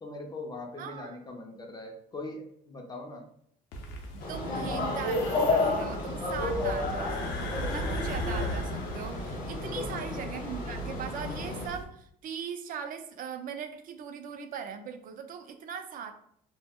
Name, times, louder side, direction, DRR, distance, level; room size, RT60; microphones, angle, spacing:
voice 1, 0.0-3.2 4.4-4.9 9.6-10.1, left 2 dB, 25° left, 2 dB, 0.4 m, -41 dB
voice 2, 0.8-1.2 4.1-16.1, right 7 dB, 55° right, 8 dB, 0.4 m, -40 dB
sound 1, 3.7-11.8, equal, 85° left, 0.5 m, -37 dB
sound 2, 4.2-11.7, left 3 dB, 55° left, 0.8 m, -32 dB
2.2 x 2.0 x 3.5 m, 0.68 s
cardioid pair, 110°, 17 cm